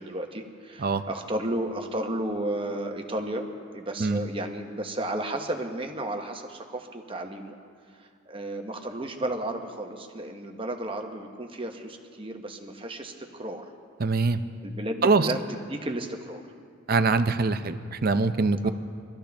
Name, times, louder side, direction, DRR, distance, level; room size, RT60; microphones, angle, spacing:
voice 1, 0.0-7.6 8.0-13.6 14.6-16.4 18.6-18.7, right 1 dB, 25° right, 4 dB, 0.9 m, -33 dB
voice 2, 14.0-14.4 15.0-15.3 16.9-18.7, right 4 dB, 45° right, 10 dB, 0.5 m, -23 dB
24.0 x 13.5 x 3.4 m, 2.2 s
head